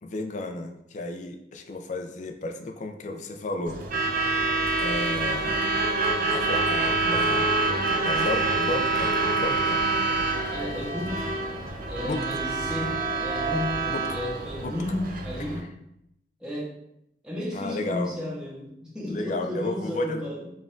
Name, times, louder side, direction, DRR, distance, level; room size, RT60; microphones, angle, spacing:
voice 1, 0.0-3.8 4.8-5.7 6.3-9.2 9.4-9.8 12.0-12.4 13.9-14.2 14.6-14.7 17.5-18.1 19.1-20.2, left 2 dB, 45° left, 5 dB, 0.4 m, -33 dB
Truck / Alarm, 3.7-15.6, right 3 dB, 50° right, 0.5 m, -26 dB
voice 2, 10.5-11.3 11.9-15.7 16.4-16.7 17.2-20.5, left 1 dB, 5° right, -6 dB, 0.7 m, -33 dB
4.1 x 2.3 x 3.7 m, 0.79 s
head